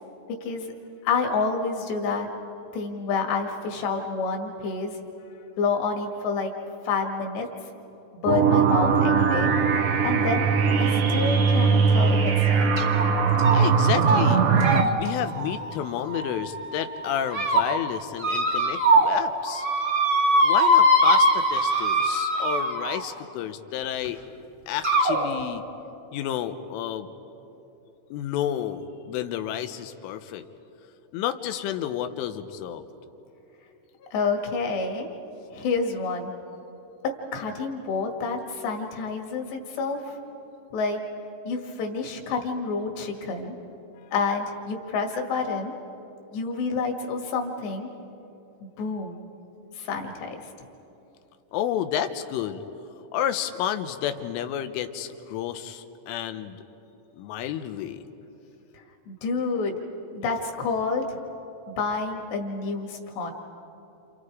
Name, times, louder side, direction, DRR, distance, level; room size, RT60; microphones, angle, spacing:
voice 1, 0.4-0.7 1.0-2.3 2.7-5.0 5.6-6.5 6.9-7.5 8.2-9.5 10.0-10.5 10.8-12.7 34.1-35.1 35.5-36.3 37.3-40.0 40.7-41.0 41.5-43.5 44.1-45.7 46.3-47.9 48.8-49.2 49.8-50.4 59.1-59.8 60.1-61.2 61.8-63.3, left 4 dB, 65° left, 2 dB, 3.9 m, -28 dB
sound 1, 8.3-14.8, right 6 dB, 75° right, 2.0 m, -20 dB
sound 2, 12.8-13.0 13.4-13.7 14.0-14.2 14.6-16.5 17.0-17.6 18.2-19.2 19.4-23.1 24.0-24.1 24.8-25.2, equal, 40° right, 1.4 m, -22 dB
voice 2, 13.5-19.7 20.4-24.2 24.7-25.6 26.1-27.1 28.1-30.5 31.1-32.8 51.5-52.6 53.1-56.6 57.2-58.0, left 10 dB, 90° left, 9 dB, 3.5 m, -31 dB
29.5 x 29.0 x 4.9 m, 3.0 s
omnidirectional pair, 5.6 m